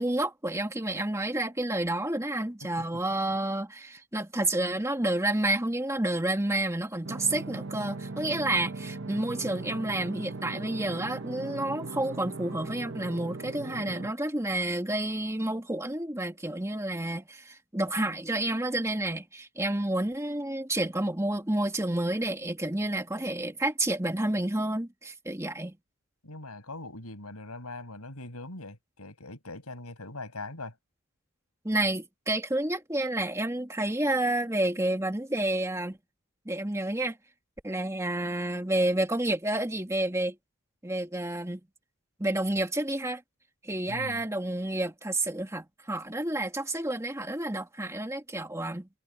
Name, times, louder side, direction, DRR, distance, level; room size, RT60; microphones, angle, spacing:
voice 1, 0.0-25.7 31.6-36.0 36.5-37.2 37.6-40.4 40.8-41.6 42.2-43.2 43.6-48.9, right 1 dB, 15° right, 1.9 m, -30 dB
sound 1, 7.0-14.1, right 3 dB, 55° right, 1.2 m, -39 dB
voice 2, 26.2-30.7 43.9-44.2, left 2 dB, 90° left, 7.8 m, -41 dB
head